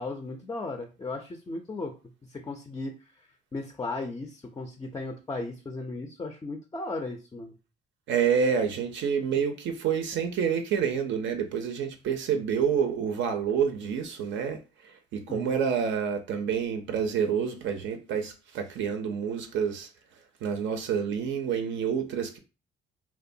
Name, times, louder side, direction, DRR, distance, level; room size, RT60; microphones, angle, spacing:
voice 1, 0.0-1.9 2.3-2.9 3.5-7.5 15.3-15.6, left 2 dB, 20° left, 0.3 m, -36 dB
voice 2, 8.1-19.9 20.4-22.4, right 7 dB, 70° right, 0.5 m, -28 dB
2.6 x 2.2 x 2.6 m
cardioid pair, 90°, 20 cm